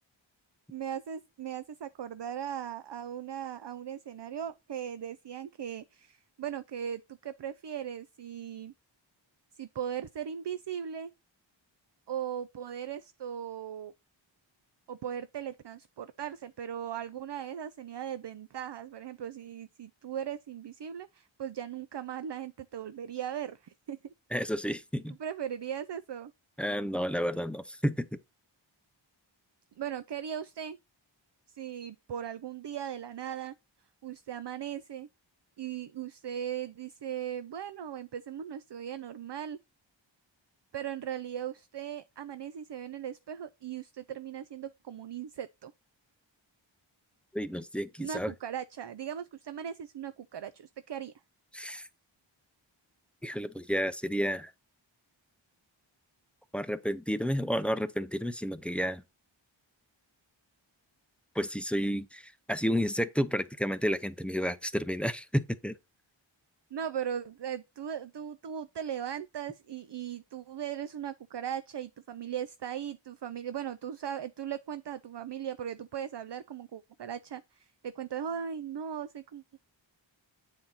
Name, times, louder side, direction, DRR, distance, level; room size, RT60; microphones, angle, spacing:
voice 1, 0.7-8.7 9.5-11.1 12.1-13.9 14.9-24.1 25.2-26.3 29.8-30.8 31.5-33.5 34.0-35.1 35.6-39.6 40.7-45.7 48.0-51.1 66.7-79.6, right 9 dB, 60° right, 0.5 m, -38 dB
voice 2, 24.3-25.1 26.6-28.2 47.3-48.3 51.5-51.9 53.2-54.5 56.5-59.0 61.4-65.8, equal, ahead, 0.6 m, -31 dB
8.6 x 4.3 x 3.9 m
wide cardioid pair, 50°, 48 cm